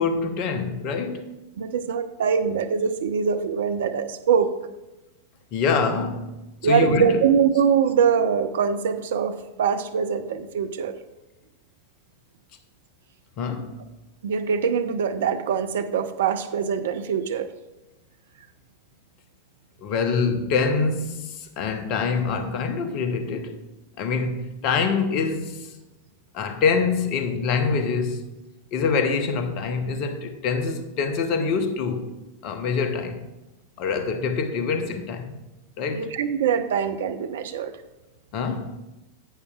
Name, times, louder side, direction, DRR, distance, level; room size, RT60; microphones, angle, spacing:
voice 1, 0.0-1.3 5.5-7.2 13.4-13.8 19.8-23.6 24.0-25.7 26.3-28.2 28.7-32.1 32.4-33.3 33.8-35.4 35.8-36.1 38.3-38.8, left 5 dB, 40° left, 0.8 m, -25 dB
voice 2, 1.6-4.5 6.6-10.9 14.2-17.5 35.9-37.7, right 7 dB, 60° right, 0.6 m, -23 dB
11.0 x 8.4 x 2.4 m
figure-of-eight pair, 90°, 0 cm